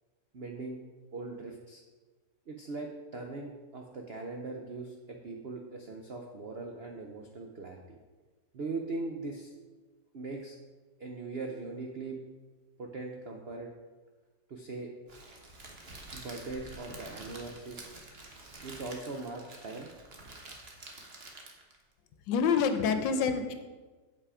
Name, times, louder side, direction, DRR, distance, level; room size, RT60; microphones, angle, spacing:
voice 1, 0.3-0.8 1.1-1.8 2.5-8.0 8.5-9.5 10.1-10.6 11.0-12.2 12.8-13.7 14.5-14.9 16.1-17.9 18.6-19.9, right 3 dB, 75° right, 2 dB, 0.5 m, -40 dB
Crackle, 15.1-21.8, right 2 dB, 40° right, 1.1 m, -48 dB
voice 2, 22.3-23.5, left 6 dB, 85° left, 8 dB, 1.4 m, -27 dB
7.3 x 5.7 x 4.8 m, 1.3 s
omnidirectional pair, 2.0 m